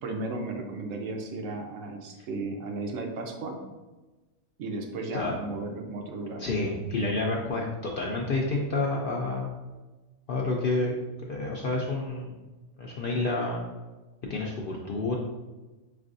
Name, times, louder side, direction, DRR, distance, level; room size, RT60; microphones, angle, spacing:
voice 1, 0.0-3.6 4.6-6.4, right 3 dB, 70° right, 3 dB, 1.0 m, -34 dB
voice 2, 6.4-9.5 10.3-10.9 11.3-12.3 12.8-13.6 14.2-15.1, left 2 dB, 60° left, -2 dB, 0.5 m, -29 dB
5.3 x 3.3 x 2.5 m, 1.2 s
omnidirectional pair, 1.4 m